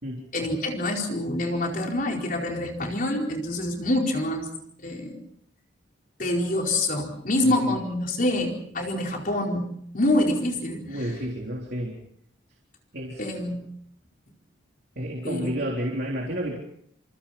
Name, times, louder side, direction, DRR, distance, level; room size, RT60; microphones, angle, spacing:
voice 1, 0.3-4.5 4.8-5.2 6.2-9.7 9.9-11.0 13.2-13.6 15.2-15.5, left 1 dB, 45° left, 1 dB, 4.6 m, -26 dB
voice 2, 10.9-12.0 12.9-13.3 15.0-16.6, equal, 55° right, -1 dB, 3.7 m, -30 dB
29.0 x 28.0 x 4.3 m, 0.68 s
head